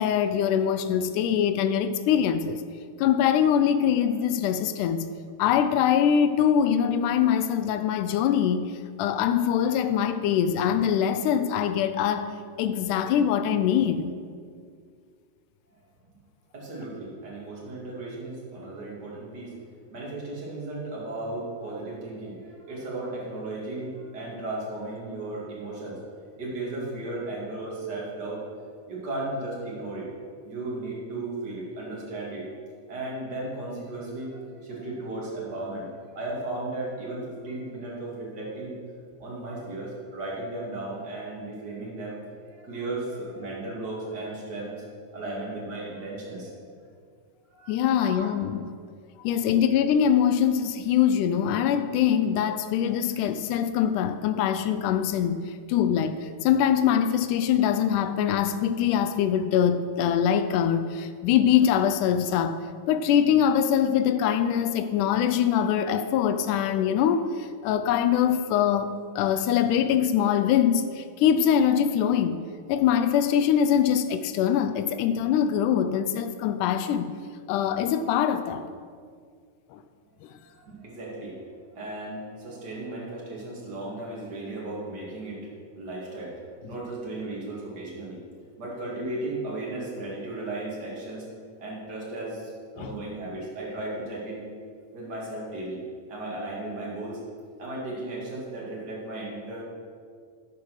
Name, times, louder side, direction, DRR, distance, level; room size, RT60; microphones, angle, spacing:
voice 1, 0.0-2.6 3.0-5.1 5.4-14.2 47.7-48.7 49.2-62.6 62.9-72.4 72.7-77.1 77.5-78.6 79.7-79.8 92.8-92.9, left 9 dB, 85° left, 2.1 m, -23 dB
voice 2, 16.5-19.5 19.9-26.0 26.4-28.4 28.9-30.1 30.4-32.4 32.9-38.7 39.2-42.2 42.4-46.5 47.5-47.7 48.0-48.3 80.4-81.4 81.7-88.2 88.6-91.3 91.6-94.4 94.9-95.8 96.1-97.2 97.6-99.6, right 2 dB, 35° right, 2.8 m, -35 dB
13.5 x 4.7 x 6.3 m
omnidirectional pair, 3.6 m